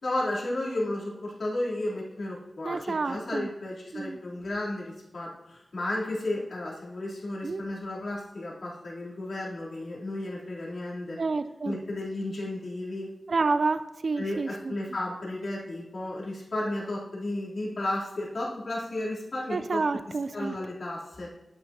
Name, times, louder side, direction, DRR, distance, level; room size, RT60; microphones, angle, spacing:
voice 1, 0.0-11.2 11.6-13.1 14.2-19.8 20.3-21.3, left 1 dB, 85° left, -6 dB, 3.5 m, -33 dB
voice 2, 2.6-3.5 3.9-4.2 7.4-7.6 11.2-11.8 13.3-14.7 19.5-20.5, right 3 dB, 70° right, 11 dB, 0.5 m, -29 dB
11.0 x 10.0 x 2.9 m, 0.98 s
wide cardioid pair, 75°, 0 cm